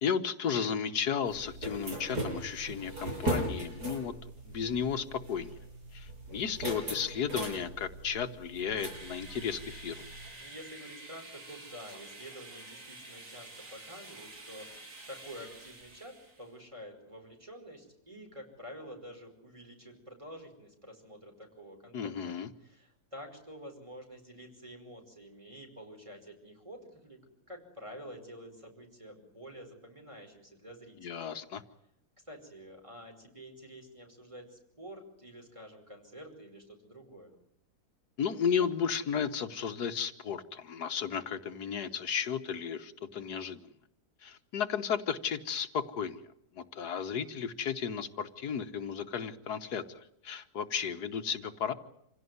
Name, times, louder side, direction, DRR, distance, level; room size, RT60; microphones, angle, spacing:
voice 1, 0.0-5.5 5.9-10.0 21.9-22.5 31.0-31.6 38.2-43.7 44.2-46.2 46.5-51.7, left 7 dB, 75° left, 9 dB, 1.7 m, -34 dB
sound 1, 1.3-10.3, right 1 dB, 80° right, 7.9 m, -39 dB
sound 2, 8.8-16.5, right 2 dB, 55° right, 3.3 m, -49 dB
voice 2, 10.4-27.2 27.5-31.3 32.2-37.3, equal, 20° right, 3 dB, 5.3 m, -49 dB
27.0 x 17.0 x 9.4 m, 0.79 s
omnidirectional pair, 1.7 m